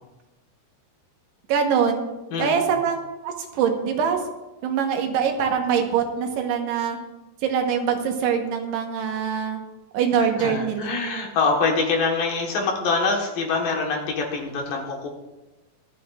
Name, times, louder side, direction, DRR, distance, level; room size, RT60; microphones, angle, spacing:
voice 1, 1.5-2.1 2.4-4.2 4.6-7.0 7.4-9.6 9.9-11.0, right 7 dB, 85° right, 3 dB, 3.3 m, -23 dB
voice 2, 2.3-2.7 10.4-15.1, left 4 dB, 65° left, 0 dB, 2.9 m, -24 dB
24.0 x 8.6 x 2.5 m, 1.1 s
omnidirectional pair, 4.7 m